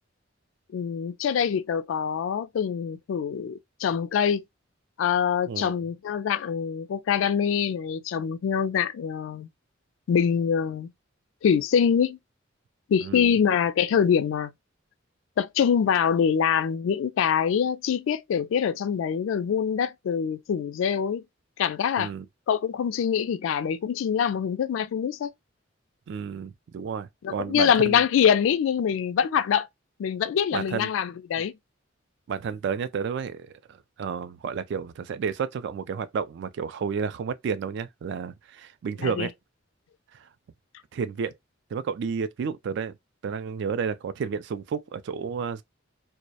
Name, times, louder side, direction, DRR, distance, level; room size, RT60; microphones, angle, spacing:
voice 1, 0.7-4.4 5.0-9.5 10.1-10.9 11.4-12.2 12.9-14.5 15.4-21.2 21.6-22.1 22.5-25.3 27.2-29.7 30.0-31.5 39.0-39.3, left 7 dB, 75° left, 0.3 m, -24 dB
voice 2, 13.0-13.4 22.0-22.3 26.1-28.0 30.5-30.9 32.3-33.5 34.0-39.3 40.9-41.3 41.7-42.9 43.2-45.6, right 6 dB, 60° right, 0.3 m, -31 dB
2.2 x 2.0 x 2.7 m
head